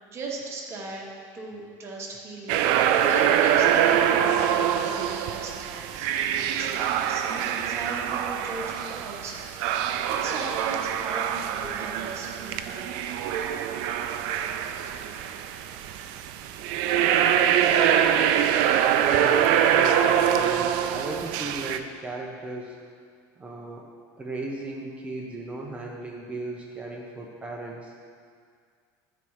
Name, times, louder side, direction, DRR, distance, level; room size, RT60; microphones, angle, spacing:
voice 1, 0.1-1.1 1.3-13.1, right 3 dB, 30° right, -2 dB, 1.1 m, -38 dB
sound 1, 2.5-21.8, right 9 dB, 65° right, 0.4 m, -24 dB
voice 2, 19.0-22.8 23.4-23.8 24.2-27.9, right 2 dB, 15° right, -2 dB, 0.6 m, -36 dB
9.7 x 4.2 x 4.8 m, 2.1 s
cardioid pair, 150°, 9 cm